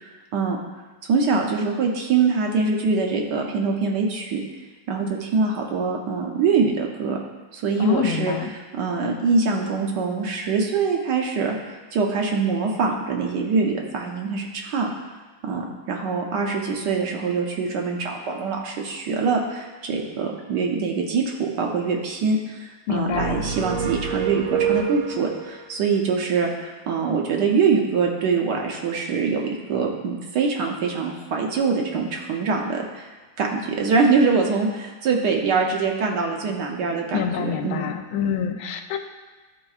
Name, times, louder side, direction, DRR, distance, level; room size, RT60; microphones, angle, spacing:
voice 1, 0.0-0.6 1.1-4.4 4.9-7.2 7.5-8.3 8.7-11.5 11.9-14.9 15.4-33.0 33.4-37.9, right 4 dB, 65° right, 1 dB, 1.2 m, -24 dB
voice 2, 7.8-8.5 22.9-23.4 37.1-39.0, left 7 dB, 85° left, 5 dB, 1.4 m, -26 dB
sound 1, 23.1-25.5, right 8 dB, 85° right, 1.4 m, -26 dB
11.5 x 4.3 x 2.4 m, 1.3 s
omnidirectional pair, 2.1 m